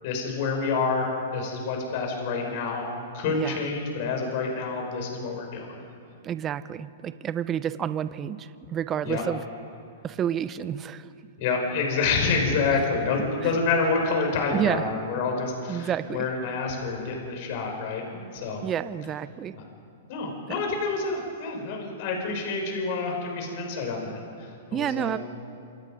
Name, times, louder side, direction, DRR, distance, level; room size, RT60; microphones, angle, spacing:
voice 1, 0.0-2.9 3.1-5.7 9.0-9.2 11.4-18.6 19.5-19.6 20.1-25.2, left 4 dB, 50° left, 1 dB, 6.0 m, -28 dB
voice 2, 3.2-3.6 6.2-9.4 10.0-11.1 13.4-13.6 14.5-14.8 15.7-16.3 18.6-19.6 20.5-20.6 24.7-25.2, right 9 dB, 25° right, 14 dB, 0.9 m, -29 dB
27.5 x 27.0 x 5.3 m, 2.6 s
hypercardioid pair, 110°, 0 cm